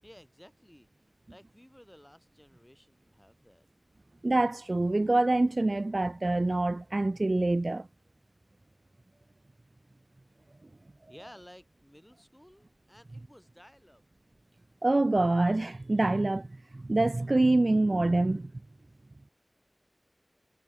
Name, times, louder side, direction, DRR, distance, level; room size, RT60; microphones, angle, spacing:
voice 1, 0.0-0.9 1.3-3.7 10.4-10.5 10.8-14.0, equal, 10° left, 4.7 m, -55 dB
voice 2, 4.2-7.9 14.8-16.5 16.7-18.5, right 2 dB, 75° right, 0.6 m, -25 dB
wide cardioid pair, 40°, 0 cm